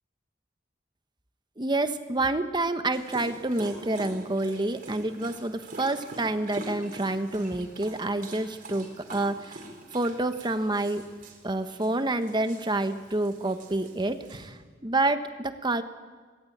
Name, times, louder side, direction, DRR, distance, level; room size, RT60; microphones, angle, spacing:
voice 1, 1.6-9.6 9.9-11.0 11.4-15.8, right 2 dB, 25° right, 9 dB, 1.2 m, -28 dB
Dog, 2.9-14.5, right 2 dB, 50° right, 4.4 m, -45 dB
25.0 x 19.5 x 8.7 m, 1.5 s
head